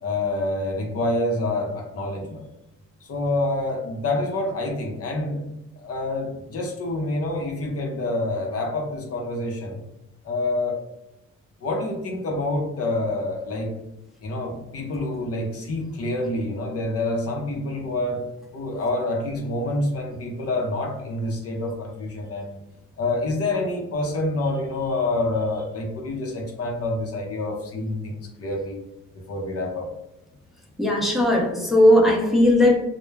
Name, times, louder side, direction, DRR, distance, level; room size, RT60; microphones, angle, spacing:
voice 1, 0.0-2.4 3.0-5.4 5.8-9.8 10.2-10.8 11.6-13.7 14.2-18.2 18.5-22.6 23.0-28.8 29.3-29.9, left 2 dB, 50° left, 1 dB, 0.6 m, -27 dB
voice 2, 30.8-32.8, left 1 dB, ahead, -3 dB, 0.6 m, -17 dB
2.2 x 2.0 x 3.2 m, 0.92 s
cardioid pair, 90°, 30 cm